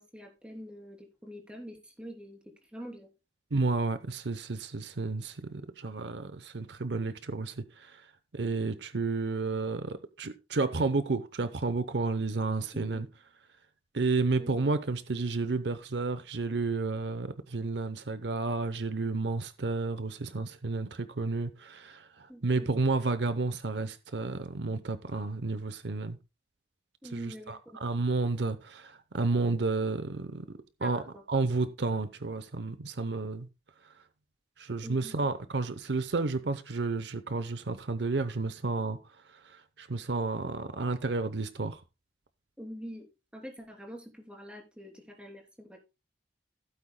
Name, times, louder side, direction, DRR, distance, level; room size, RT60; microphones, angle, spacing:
voice 1, 0.0-3.1 12.7-13.0 14.4-14.5 22.3-22.7 27.0-27.8 30.8-31.2 34.8-35.3 42.6-43.1 43.3-45.8, equal, 5° right, 3.1 m, -45 dB
voice 2, 3.5-8.0 8.3-13.1 13.9-26.2 27.1-30.4 30.8-31.0 31.3-33.5 34.6-39.0 39.4-41.8, right 3 dB, 70° right, 0.8 m, -31 dB
16.5 x 8.7 x 2.2 m
head